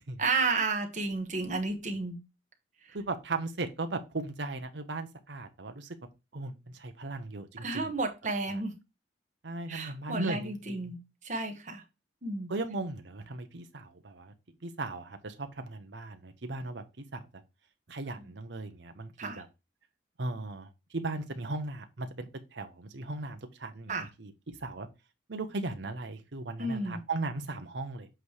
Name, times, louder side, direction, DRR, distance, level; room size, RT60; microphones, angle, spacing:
voice 1, 0.2-2.2 7.6-8.7 9.7-11.8 12.2-12.5 19.2-19.4 23.9-24.1 26.6-27.0, right 3 dB, 40° right, 1.4 m, -32 dB
voice 2, 2.9-6.0 6.3-7.9 9.4-10.9 12.5-14.3 14.6-17.2 17.9-19.5 20.2-24.9 25.3-28.1, right 2 dB, 70° right, 0.9 m, -37 dB
7.9 x 3.3 x 4.6 m
head